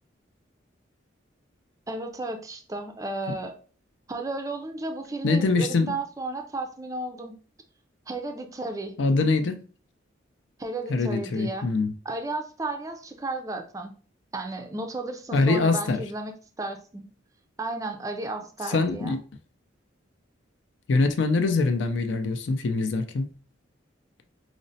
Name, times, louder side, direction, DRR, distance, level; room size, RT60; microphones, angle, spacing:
voice 1, 1.9-3.6 4.1-7.4 8.1-9.0 10.6-11.7 12.0-13.9 14.3-17.1 17.6-19.2, right 2 dB, 15° right, 0.3 m, -33 dB
voice 2, 5.2-6.0 9.0-9.6 10.9-11.9 15.3-16.0 18.7-19.2 20.9-23.3, left 3 dB, 75° left, 0.4 m, -23 dB
5.0 x 2.0 x 2.6 m
head